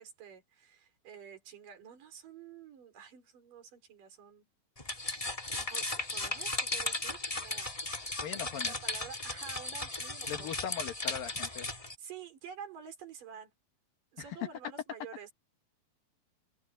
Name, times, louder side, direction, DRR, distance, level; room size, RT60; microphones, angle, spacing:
voice 1, 0.0-4.5 5.5-7.7 8.6-10.7 12.0-13.5 14.1-15.3, right 7 dB, 70° right, 5.8 m, -49 dB
sound 1, 4.8-11.9, left 2 dB, 15° left, 1.2 m, -36 dB
voice 2, 8.2-8.8 10.3-11.7 14.2-14.4, left 8 dB, 80° left, 3.5 m, -40 dB
omnidirectional pair, 4.0 m